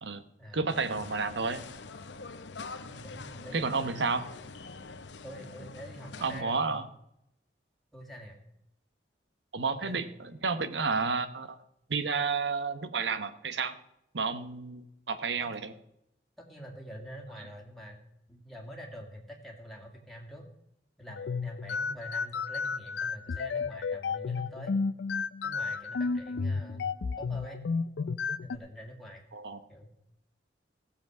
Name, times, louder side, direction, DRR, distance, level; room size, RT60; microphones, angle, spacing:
voice 1, 0.5-1.6 3.5-4.2 6.2-6.9 9.5-11.6 11.9-13.8 14.1-15.7 29.3-29.6, right 4 dB, 85° right, 12 dB, 1.0 m, -31 dB
sound 1, 0.7-6.4, left 4 dB, 90° left, 0.8 m, -45 dB
voice 2, 2.8-4.1 5.2-6.8 7.9-8.4 9.8-10.1 16.4-18.0 18.3-20.5 21.0-24.8 25.4-26.9 27.2-27.6 28.4-29.2 29.7-29.9, equal, ahead, -1 dB, 2.2 m, -46 dB
sound 2, 21.1-28.6, left 4 dB, 75° left, 0.4 m, -32 dB
16.0 x 7.3 x 6.1 m, 0.81 s
head